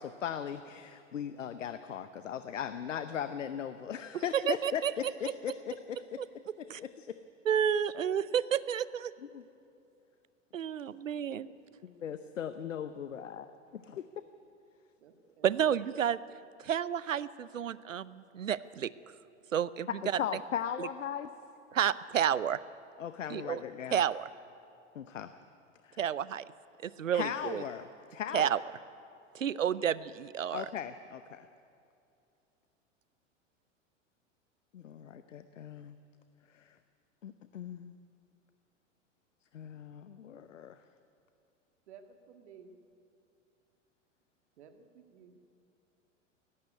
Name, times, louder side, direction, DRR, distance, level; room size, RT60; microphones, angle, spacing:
voice 1, 0.0-6.2 6.6-7.2 9.3-9.4 11.8-14.0 19.9-21.3 23.0-24.0 24.9-25.3 25.8-26.0 27.1-28.5 30.5-31.5 34.7-36.0 36.5-36.7 37.2-38.0 39.5-40.8, left 8 dB, 75° left, 12 dB, 0.8 m, -38 dB
voice 2, 4.1-4.9 6.2-6.3 6.7-6.8 7.5-9.1 10.5-11.5 15.4-16.2 16.6-18.9 19.5-20.0 20.8-20.9 21.7-22.6 23.3-23.6 23.9-24.3 26.0-26.4 26.8-27.6 28.3-28.6 29.3-30.7, right 9 dB, 80° right, 18 dB, 0.7 m, -30 dB
voice 3, 12.0-12.3 15.0-15.5 41.9-42.8 44.6-45.4, right 6 dB, 60° right, 7 dB, 2.0 m, -56 dB
18.0 x 15.5 x 9.8 m, 2.6 s
figure-of-eight pair, 95°, 38 cm